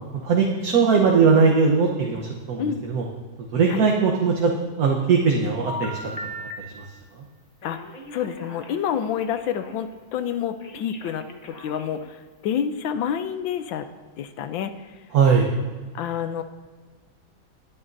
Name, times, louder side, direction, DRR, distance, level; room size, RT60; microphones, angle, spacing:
voice 1, 0.2-3.0 3.5-4.5 4.8-6.0 6.8-6.9 15.1-15.5, right 5 dB, 55° right, 0 dB, 1.3 m, -19 dB
Telephone, 5.6-6.5 7.6-9.8 10.6-12.1, left 1 dB, 30° left, 0.7 m, -38 dB
voice 2, 8.1-13.8 14.2-14.7 15.9-16.4, left 8 dB, 75° left, 10 dB, 1.3 m, -28 dB
19.5 x 9.6 x 2.6 m, 1.4 s
omnidirectional pair, 2.2 m